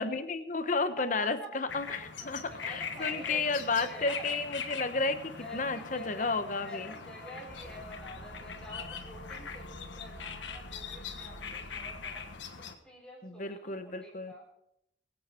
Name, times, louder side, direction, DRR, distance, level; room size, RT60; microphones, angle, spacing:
voice 1, 0.0-2.4 2.7-6.9 13.2-14.3, left 3 dB, 45° left, 10 dB, 1.0 m, -32 dB
voice 2, 1.0-1.5 1.9-4.3 5.4-12.3 12.6-14.5, left 1 dB, 5° left, -3 dB, 3.8 m, -48 dB
sound 1, 1.7-12.7, left 6 dB, 90° left, 1.4 m, -42 dB
sound 2, 7.5-12.5, right 1 dB, 45° right, 2.3 m, -50 dB
22.0 x 8.8 x 4.4 m, 0.77 s
head